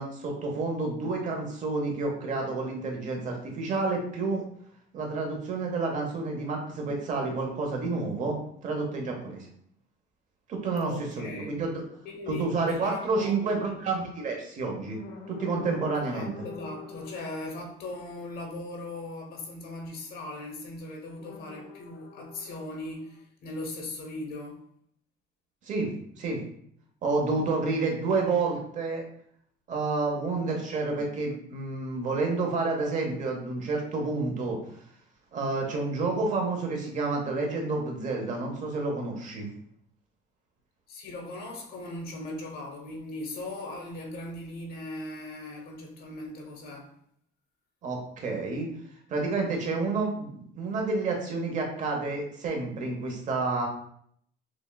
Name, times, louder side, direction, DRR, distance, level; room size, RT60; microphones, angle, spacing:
voice 1, 0.0-4.4 4.9-8.4 8.6-9.5 10.5-11.8 12.3-15.0 15.3-16.3 25.7-26.4 27.0-29.0 29.7-34.6 35.3-39.5 47.8-48.7 49.1-53.7, right 3 dB, 40° right, 0.9 m, -29 dB
voice 2, 10.9-11.6 12.0-13.6 15.9-24.6 40.9-46.9, left 2 dB, 55° left, 1.0 m, -39 dB
sound 1, 11.9-12.1 13.1-13.3 14.9-17.3 21.2-23.2, left 6 dB, 80° left, 0.7 m, -45 dB
6.1 x 2.3 x 2.3 m
cardioid pair, 155°, 19 cm